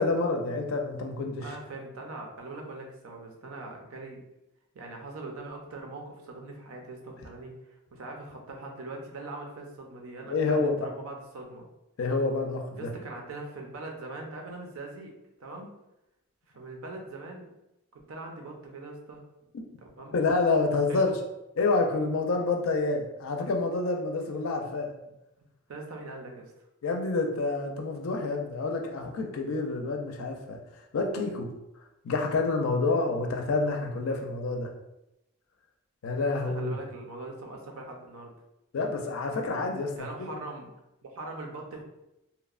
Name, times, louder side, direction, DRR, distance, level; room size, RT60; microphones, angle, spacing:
voice 1, 0.0-1.5 10.3-10.9 12.0-12.9 20.1-21.1 21.6-24.9 26.8-30.6 30.9-31.5 32.0-34.7 36.0-36.7 38.7-40.3, left 3 dB, 70° left, 3 dB, 0.4 m, -28 dB
voice 2, 1.4-4.2 4.7-11.7 12.7-15.1 15.4-15.7 16.5-17.5 18.1-19.2 20.0-20.1 20.7-21.0 25.0-25.1 25.7-26.5 36.3-38.3 40.0-40.7 41.0-41.8, right 2 dB, 75° right, 1 dB, 0.5 m, -41 dB
2.8 x 2.0 x 2.3 m, 0.89 s
head